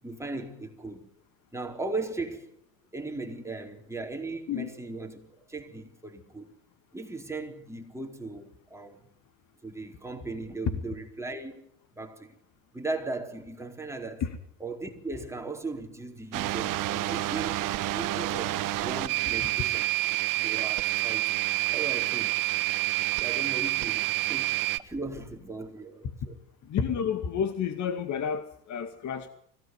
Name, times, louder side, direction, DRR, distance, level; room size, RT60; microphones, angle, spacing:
voice 1, 0.0-1.1 1.5-2.6 2.9-6.5 6.9-9.1 9.6-11.6 11.9-12.4 12.7-14.2 14.6-17.6 17.9-20.2 20.4-21.4 21.7-26.4, right 3 dB, 5° right, 4.5 m, -38 dB
sound 1, 16.3-24.8, right 17 dB, 40° right, 1.3 m, -28 dB
voice 2, 26.6-29.3, left 7 dB, 35° left, 2.2 m, -30 dB
25.0 x 17.5 x 9.7 m
supercardioid pair, 110°, 48 cm